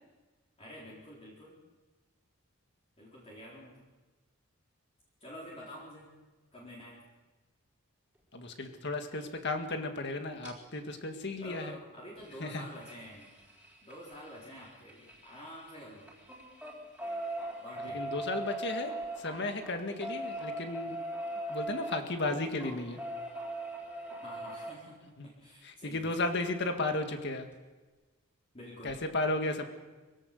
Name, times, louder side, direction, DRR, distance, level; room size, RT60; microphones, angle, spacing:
voice 1, 0.6-1.6 3.0-3.8 5.2-6.1 6.5-7.0 11.4-13.4 13.8-16.1 17.6-18.1 24.2-26.3 28.5-29.0, equal, 30° left, -5 dB, 4.1 m, -48 dB
voice 2, 8.3-11.8 12.4-12.6 17.8-21.0 21.5-23.0 25.2-25.3 25.6-27.5 28.8-29.6, left 2 dB, 55° left, 6 dB, 2.0 m, -34 dB
sound 1, 10.4-10.5 12.2-15.7 16.0-24.7 26.4-26.5 26.8-26.9 27.2-27.3, right 1 dB, 5° right, 4.3 m, -40 dB
24.0 x 17.0 x 6.7 m, 1.2 s
head